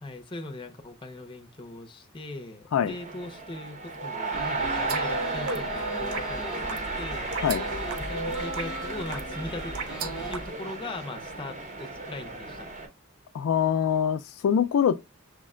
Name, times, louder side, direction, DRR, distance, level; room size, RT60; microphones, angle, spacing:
voice 1, 0.0-7.3 8.0-9.7 10.0-12.7, left 2 dB, 20° left, 0.6 m, -40 dB
sound 1, 2.9-12.9, right 3 dB, 35° right, 0.8 m, -34 dB
sound 2, 4.3-10.5, equal, 5° right, 0.9 m, -39 dB
sound 3, 4.8-10.4, right 4 dB, 80° right, 0.6 m, -36 dB
voice 2, 7.3-7.6 13.3-15.0, left 8 dB, 80° left, 0.3 m, -24 dB
6.2 x 2.1 x 3.6 m
head